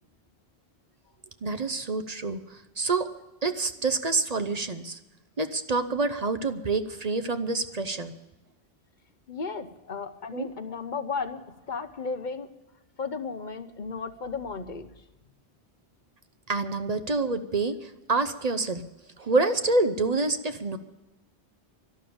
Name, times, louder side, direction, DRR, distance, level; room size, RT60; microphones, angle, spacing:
voice 1, 1.4-3.1 3.4-5.0 5.4-8.1 10.3-10.5 16.5-18.8 19.2-20.8, right 3 dB, 40° right, 9 dB, 0.9 m, -27 dB
voice 2, 9.3-12.5 13.0-14.9, left 5 dB, 45° left, 9 dB, 1.1 m, -34 dB
12.0 x 12.0 x 8.7 m, 1.1 s
omnidirectional pair, 1.1 m